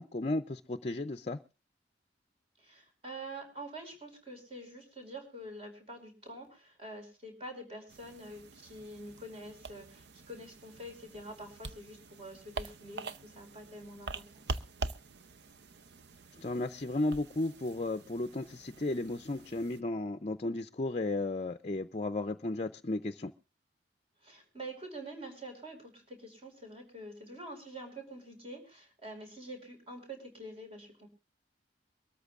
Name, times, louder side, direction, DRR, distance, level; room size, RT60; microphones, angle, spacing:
voice 1, 0.0-1.4 16.4-23.3, left 2 dB, 35° left, 9 dB, 0.6 m, -34 dB
voice 2, 2.6-14.6 24.2-31.1, right 1 dB, 35° right, 4 dB, 5.1 m, -46 dB
sound 1, 7.9-19.8, right 3 dB, 65° right, 0.7 m, -45 dB
23.5 x 13.5 x 2.5 m, 0.32 s
head